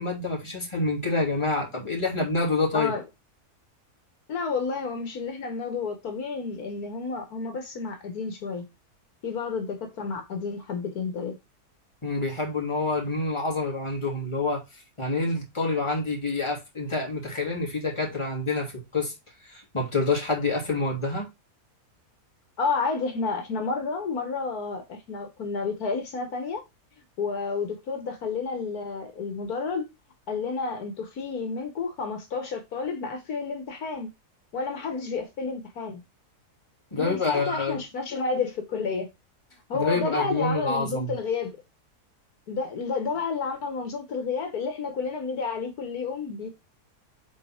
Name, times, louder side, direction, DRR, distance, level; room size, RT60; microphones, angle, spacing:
voice 1, 0.0-2.9 12.0-14.6 15.0-19.1 19.4-21.3 36.9-37.8 39.7-41.1, left 3 dB, 20° left, 2.8 m, -27 dB
voice 2, 4.3-8.7 9.2-11.3 22.6-26.6 27.2-29.8 30.3-34.1 34.5-36.0 37.0-39.1 39.7-41.6 42.5-46.5, left 4 dB, 75° left, 1.7 m, -30 dB
7.6 x 4.2 x 4.3 m
omnidirectional pair, 1.6 m